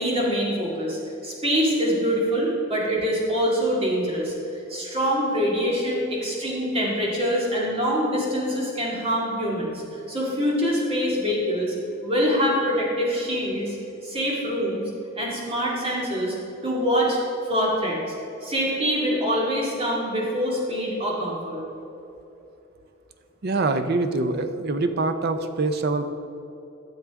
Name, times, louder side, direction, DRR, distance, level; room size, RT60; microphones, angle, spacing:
voice 1, 0.0-4.3 4.7-9.8 10.1-11.7 12.0-13.8 14.0-14.8 15.2-16.3 16.6-17.2 17.5-18.0 18.4-21.6, equal, 30° right, -4 dB, 2.1 m, -24 dB
voice 2, 23.4-26.0, right 3 dB, 50° right, 9 dB, 0.6 m, -24 dB
13.0 x 7.1 x 3.6 m, 2.9 s
head